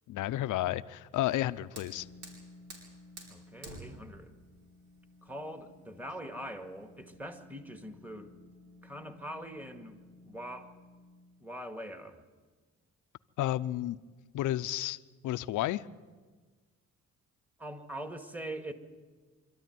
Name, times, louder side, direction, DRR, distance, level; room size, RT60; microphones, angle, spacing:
voice 1, 0.1-2.1 13.4-14.0 14.3-15.0 15.2-15.8, left 14 dB, 80° left, 14 dB, 0.7 m, -31 dB
Fire, 1.1-7.1, right 2 dB, 75° right, 6.3 m, -52 dB
sound 1, 1.5-11.4, left 2 dB, 55° right, 6.9 m, -57 dB
voice 2, 3.3-4.4 5.2-8.3 8.8-10.0 10.3-10.7 11.4-12.2 17.6-18.7, right 1 dB, 5° right, 6 dB, 2.1 m, -42 dB
25.5 x 13.5 x 9.4 m, 1.4 s
cardioid pair, 90°, 30 cm